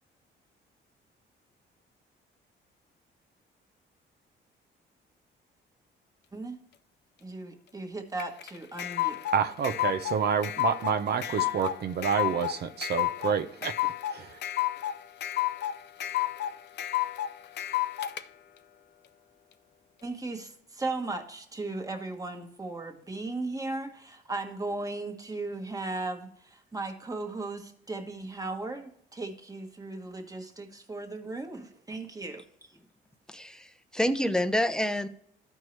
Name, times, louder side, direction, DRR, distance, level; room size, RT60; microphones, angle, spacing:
voice 1, 7.2-9.2 20.0-32.7, right 2 dB, 15° right, 1.3 m, -37 dB
sound 1, 8.2-18.2, left 14 dB, 60° left, 0.5 m, -31 dB
voice 2, 9.3-14.4, right 7 dB, 55° right, 0.6 m, -29 dB
voice 3, 33.3-35.1, left 1 dB, 5° left, 0.6 m, -28 dB
13.0 x 4.6 x 3.2 m
cardioid pair, 90°, 20 cm